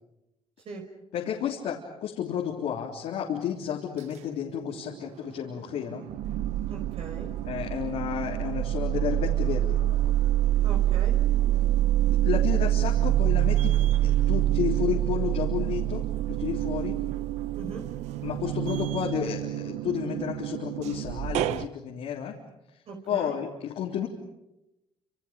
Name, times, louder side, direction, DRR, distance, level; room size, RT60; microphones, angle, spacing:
voice 1, 1.1-6.0 7.4-10.1 12.2-17.0 18.2-22.3 23.1-24.1, left 9 dB, 80° left, -2 dB, 3.6 m, -32 dB
sound 1, 4.6-5.4 5.8-21.7, right 13 dB, 90° right, 0.9 m, -26 dB
voice 2, 6.7-7.3 10.6-11.2 17.5-17.8 22.9-23.3, right 4 dB, 60° right, 2 dB, 5.2 m, -39 dB
29.5 x 28.0 x 5.2 m, 0.90 s
cardioid pair, 95°, 11 cm